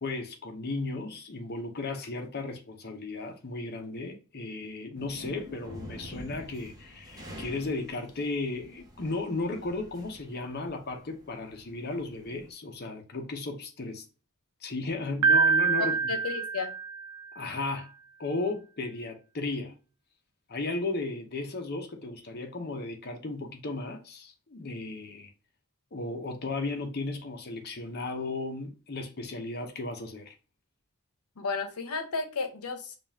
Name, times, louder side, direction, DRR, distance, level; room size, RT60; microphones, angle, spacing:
voice 1, 0.0-14.0 14.6-16.0 17.4-17.9 18.2-19.7 20.5-25.3 25.9-30.3, left 3 dB, 45° left, 0.8 m, -35 dB
sound 1, 5.0-12.5, left 1 dB, 15° right, 0.9 m, -47 dB
Piano, 15.2-17.3, right 6 dB, 75° right, 0.4 m, -25 dB
voice 2, 15.8-16.7 31.4-33.0, left 4 dB, 85° left, 0.8 m, -33 dB
5.2 x 2.4 x 2.7 m
head